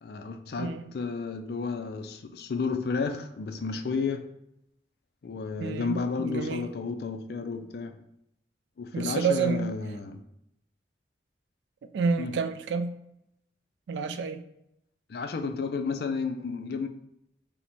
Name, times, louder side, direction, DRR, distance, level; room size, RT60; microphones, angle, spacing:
voice 1, 0.0-4.3 5.2-8.0 8.8-10.2 12.2-12.4 15.1-16.9, left 4 dB, 55° left, 0.4 m, -32 dB
voice 2, 5.6-6.7 8.9-9.7 11.9-13.0 13.9-14.5, right 5 dB, 75° right, 0.3 m, -29 dB
4.4 x 2.1 x 4.1 m
head